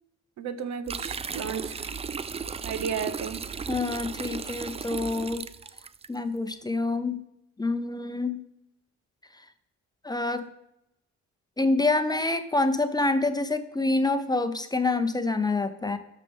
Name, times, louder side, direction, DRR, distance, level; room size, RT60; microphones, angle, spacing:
voice 1, 0.4-1.9 2.6-3.4, right 7 dB, 65° right, 12 dB, 0.8 m, -33 dB
sound 1, 0.9-6.1, right 5 dB, 20° right, 0.3 m, -35 dB
voice 2, 3.7-5.4 6.1-7.2 7.6-8.4 10.0-10.5 11.6-16.0, left 2 dB, 15° left, 9 dB, 0.7 m, -26 dB
12.5 x 5.7 x 3.6 m, 0.83 s
cardioid pair, 90°, 30 cm